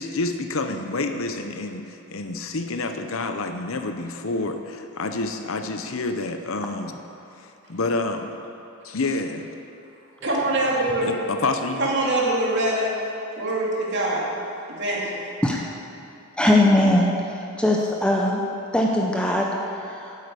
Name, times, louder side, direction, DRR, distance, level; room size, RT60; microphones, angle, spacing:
voice 1, 0.0-7.0 7.7-8.3 8.8-9.5 11.0-11.9, left 3 dB, 60° left, 6 dB, 0.8 m, -28 dB
voice 2, 10.2-11.1 11.8-12.9 13.4-14.3 14.7-15.2, right 1 dB, 55° right, -4 dB, 2.6 m, -24 dB
voice 3, 16.4-17.1 17.6-18.4 18.7-19.5 20.0-20.2, left 1 dB, 5° left, -1 dB, 0.7 m, -19 dB
9.3 x 8.0 x 8.3 m, 2.8 s
head